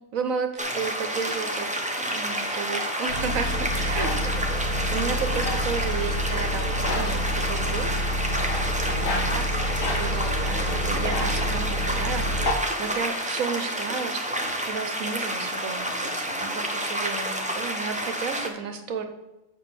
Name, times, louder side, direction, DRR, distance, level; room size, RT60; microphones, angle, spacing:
voice 1, 0.0-7.9 8.8-19.0, right 5 dB, 75° right, 7 dB, 1.4 m, -33 dB
sound 1, 0.6-18.5, right 1 dB, 5° right, 0.9 m, -29 dB
sound 2, 3.1-12.5, equal, 70° left, 1.6 m, -28 dB
8.3 x 4.9 x 7.0 m, 1.0 s
omnidirectional pair, 1.4 m